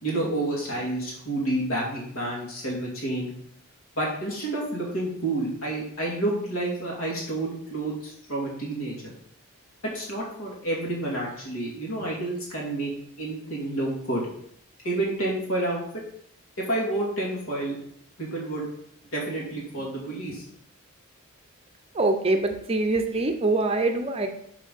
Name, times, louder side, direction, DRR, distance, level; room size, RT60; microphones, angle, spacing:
voice 1, 0.0-3.3 4.0-9.1 9.9-12.9 13.2-14.2 14.8-16.0 16.6-17.8 18.2-18.7 19.1-20.4, right 2 dB, 70° left, -4 dB, 2.3 m, -29 dB
voice 2, 21.9-24.3, right 2 dB, 25° right, 5 dB, 0.6 m, -24 dB
5.5 x 4.8 x 5.5 m, 0.68 s
head